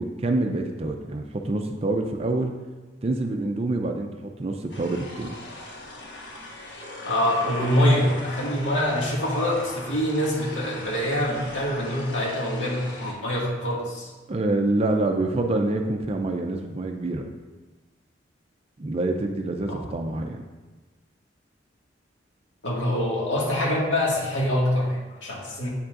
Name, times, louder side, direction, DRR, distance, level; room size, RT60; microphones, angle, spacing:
voice 1, 0.0-2.5 3.0-5.4 14.3-17.3 18.8-20.5, right 2 dB, 35° right, 4 dB, 0.4 m, -26 dB
sound 1, 4.7-13.1, left 1 dB, 65° left, 1.2 m, -40 dB
voice 2, 7.1-14.1 19.6-19.8 22.6-25.7, left 1 dB, 90° left, -4 dB, 1.9 m, -25 dB
8.5 x 7.2 x 2.5 m, 1.2 s
head